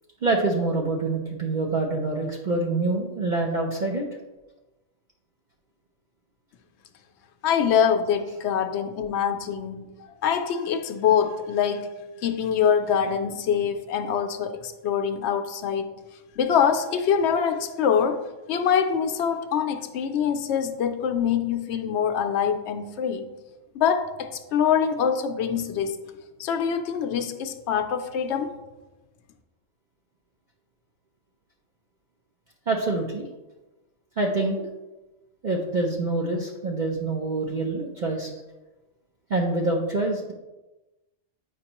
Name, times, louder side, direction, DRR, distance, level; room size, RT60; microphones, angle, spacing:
voice 1, 0.2-4.0 32.7-33.3 34.2-34.7 35.4-38.3 39.3-40.3, right 2 dB, 45° right, -1 dB, 0.7 m, -26 dB
voice 2, 7.4-9.9 10.2-11.9 12.2-15.9 16.4-18.2 18.5-23.2 23.7-26.0 26.4-28.5, left 7 dB, 70° left, 6 dB, 0.9 m, -24 dB
8.4 x 5.2 x 2.9 m, 1.1 s
omnidirectional pair, 1.2 m